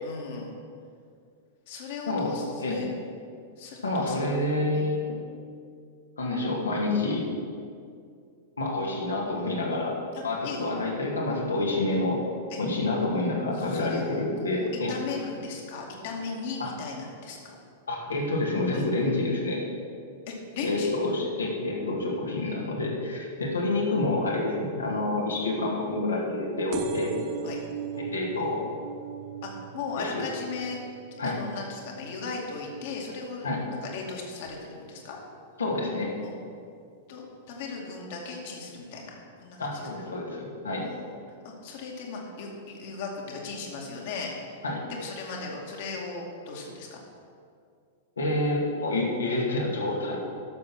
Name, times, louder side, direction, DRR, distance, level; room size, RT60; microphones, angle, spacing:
voice 1, 0.0-0.5 1.7-2.9 3.6-4.2 4.7-4.9 10.1-10.7 12.5-12.6 13.5-17.6 18.7-18.9 20.3-20.9 27.4-27.6 29.4-30.8 31.2-33.6 33.8-35.2 36.2-36.3 37.1-39.1 39.4-39.9 40.9-41.2 41.4-44.3 44.9-47.0, left 4 dB, 50° left, -1 dB, 2.3 m, -37 dB
voice 2, 2.1-2.8 3.8-5.2 6.2-7.2 8.6-9.9 10.2-12.2 12.6-14.9 16.6-16.7 17.9-19.6 20.6-27.2 28.0-28.6 30.0-30.2 31.2-31.4 33.4-33.6 35.6-36.1 39.6-40.9 44.6-44.8 48.2-50.2, left 2 dB, 70° left, -2 dB, 2.4 m, -28 dB
sound 1, 26.7-34.0 34.4-34.9 35.8-35.9 36.1-36.2 36.4-36.5, right 9 dB, 40° right, 0.7 m, -40 dB
12.0 x 7.1 x 6.1 m, 2.3 s
figure-of-eight pair, 95°, 0 cm